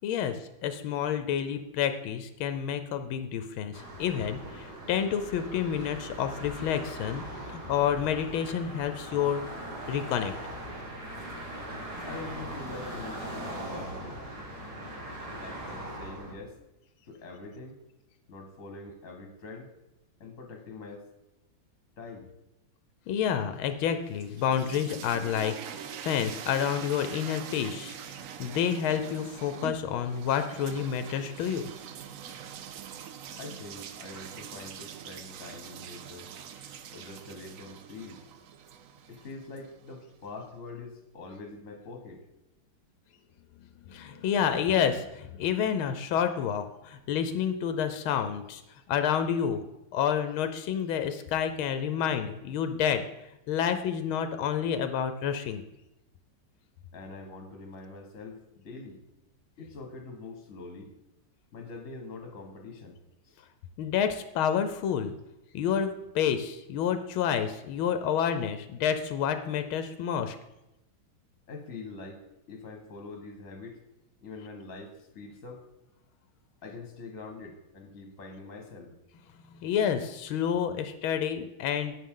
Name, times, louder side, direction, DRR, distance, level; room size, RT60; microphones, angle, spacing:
voice 1, 0.0-9.4 9.9-10.3 23.1-31.7 43.9-48.6 48.9-49.6 49.9-53.0 53.5-55.6 63.8-65.1 65.5-70.4 79.5-82.0, left 8 dB, 85° left, 9 dB, 1.5 m, -29 dB
sound 1, 3.7-16.3, right 1 dB, 50° right, 2.4 m, -40 dB
voice 2, 12.1-14.2 15.4-16.6 17.1-17.8 18.3-19.7 20.2-21.1 22.0-22.3 33.4-36.3 36.9-38.2 39.1-42.2 56.9-59.0 59.6-60.9 61.5-63.0 63.2-63.4 71.5-73.8 74.2-75.6 76.6-78.9, left 3 dB, 40° left, 4 dB, 1.7 m, -44 dB
sound 2, 24.0-40.0, right 8 dB, 90° right, 0.7 m, -44 dB
11.5 x 8.8 x 3.8 m, 0.93 s
omnidirectional pair, 2.2 m